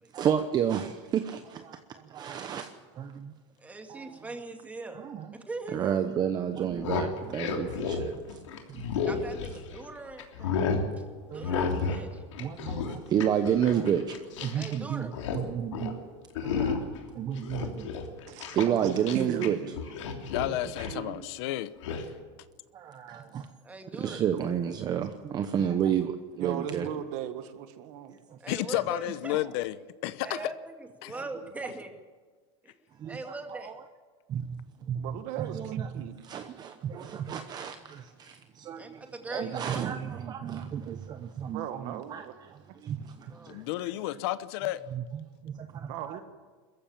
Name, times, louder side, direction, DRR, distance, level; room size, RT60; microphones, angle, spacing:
voice 1, 0.1-3.3 3.9-4.2 4.9-5.3 5.7-8.4 8.7-8.9 11.3-11.6 12.4-16.0 16.4-17.9 18.5-19.6 22.7-23.5 23.9-26.9 28.1-28.4 30.4-30.5 31.1-31.2 31.6-31.7 33.0-33.8 34.3-39.0 39.3-43.9 44.9-46.2, right 9 dB, 25° right, 8 dB, 0.9 m, -31 dB
voice 2, 3.6-5.0 5.5-6.0 9.1-10.6 11.3-12.2 14.5-15.1 23.6-24.2 28.4-29.4 30.2-30.7 31.0-31.9 32.6-32.7 33.0-33.7 38.8-38.9 39.2-40.1 43.3-43.6, right 2 dB, 10° right, 4 dB, 2.2 m, -41 dB
sound 1, 6.6-9.8 10.2-10.9 11.4-12.1 12.3-14.8 15.0-15.4 15.7-16.0 16.4-17.0 17.4-19.5 19.7-21.0 21.8-22.0, left 5 dB, 90° left, 3.2 m, -32 dB
voice 3, 18.8-19.8 20.6-21.3 23.1-23.2 26.4-28.1 34.9-36.1 41.5-42.4 45.9-46.2, right 10 dB, 50° right, 9 dB, 1.7 m, -37 dB
voice 4, 20.3-22.1 28.5-30.5 31.0-31.1 43.5-44.8, left 16 dB, 60° left, 15 dB, 0.9 m, -32 dB
21.5 x 14.5 x 8.9 m, 1.4 s
supercardioid pair, 145°, 15 cm